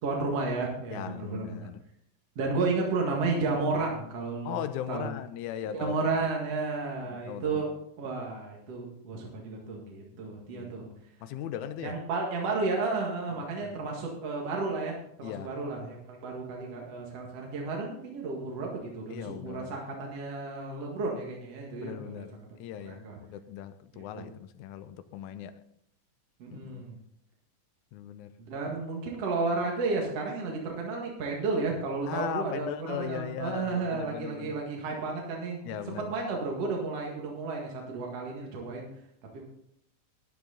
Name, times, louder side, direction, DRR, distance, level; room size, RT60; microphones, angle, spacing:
voice 1, 0.0-1.5 2.4-4.6 4.9-5.1 5.7-7.7 8.0-10.9 11.8-22.3 22.9-23.1 23.9-24.3 26.4-27.0 28.4-38.9 39.3-39.4, right 3 dB, 55° right, 2.8 m, -32 dB
voice 2, 0.9-1.8 4.5-6.1 7.0-7.6 10.5-10.7 11.2-12.0 13.6-13.8 15.2-15.5 19.1-19.8 21.8-25.6 26.5-26.9 27.9-28.3 32.1-34.6 35.6-36.2, left 10 dB, 80° left, 2.0 m, -38 dB
12.5 x 9.5 x 3.9 m
omnidirectional pair, 3.7 m